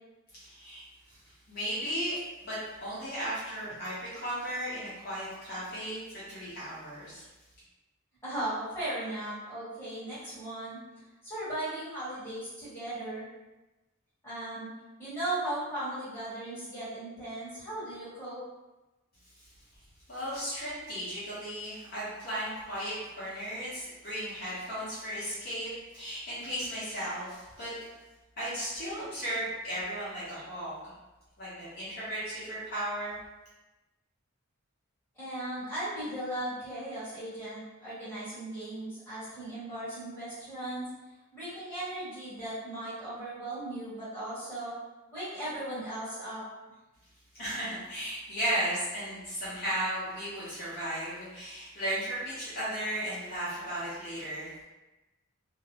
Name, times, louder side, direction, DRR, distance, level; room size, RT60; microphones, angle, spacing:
voice 1, 0.4-1.2 1.5-2.1 2.4-7.3 19.4-19.5 20.1-27.7 28.4-30.7 31.4-33.1 47.3-54.6, right 1 dB, 40° left, -11 dB, 0.9 m, -35 dB
voice 2, 8.2-10.8 11.2-13.3 14.2-14.7 15.0-18.4 35.1-40.9 41.3-44.7 45.1-46.4, right 1 dB, 10° left, -13 dB, 1.2 m, -37 dB
2.5 x 2.0 x 2.8 m, 1.1 s
head